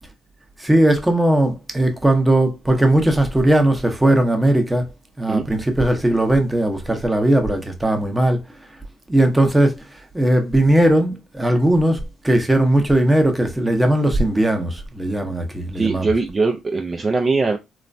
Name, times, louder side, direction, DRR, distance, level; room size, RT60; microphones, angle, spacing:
voice 1, 0.6-4.8 5.2-8.4 9.1-9.8 10.1-16.2, right 1 dB, 10° right, 0.7 m, -18 dB
voice 2, 15.7-17.6, right 3 dB, 30° right, 0.4 m, -21 dB
3.0 x 2.1 x 2.5 m
supercardioid pair, 75°, 0 cm